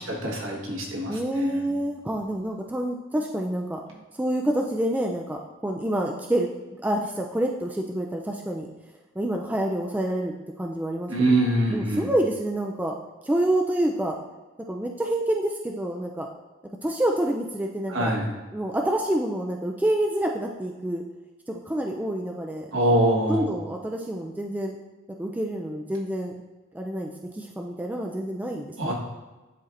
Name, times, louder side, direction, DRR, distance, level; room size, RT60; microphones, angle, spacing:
voice 1, 0.0-1.6 11.1-12.1 17.9-18.3 22.7-23.5 28.8-28.9, right 1 dB, 65° right, -2 dB, 1.4 m, -24 dB
voice 2, 1.1-3.8 4.2-6.5 6.8-8.7 9.2-11.1 11.7-12.9 13.2-14.1 14.7-16.3 16.8-18.1 18.5-21.0 21.5-23.0 23.3-24.8 25.2-26.4 26.7-28.9, right 1 dB, 10° right, 1 dB, 0.3 m, -27 dB
10.5 x 4.2 x 2.5 m, 1.2 s
head